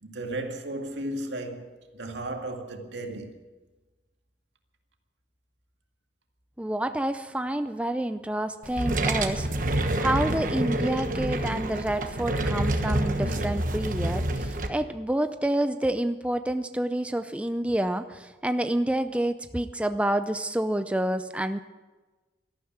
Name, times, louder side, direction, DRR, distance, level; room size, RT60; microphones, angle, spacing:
voice 1, 0.0-3.3, right 1 dB, 85° right, 2.1 m, -35 dB
voice 2, 6.6-9.5 10.0-21.6, right 1 dB, 5° right, 0.5 m, -28 dB
sound 1, 8.6-14.7, right 1 dB, 45° right, 1.2 m, -27 dB
13.0 x 12.0 x 8.8 m
head